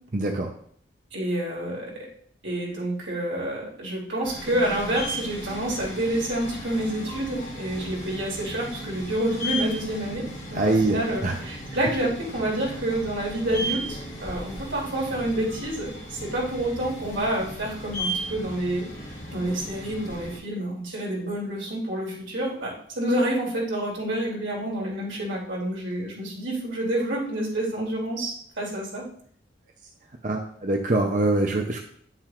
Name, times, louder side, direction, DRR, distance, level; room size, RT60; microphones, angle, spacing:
voice 1, 0.1-0.5 10.5-11.3 30.2-31.8, right 2 dB, 45° right, 2 dB, 0.7 m, -24 dB
voice 2, 1.1-2.1 2.4-10.2 10.5-29.0, right 1 dB, 90° right, -3 dB, 3.0 m, -28 dB
sound 1, 4.2-20.4, equal, 40° left, 2.2 m, -36 dB
9.4 x 7.4 x 2.5 m, 0.62 s
head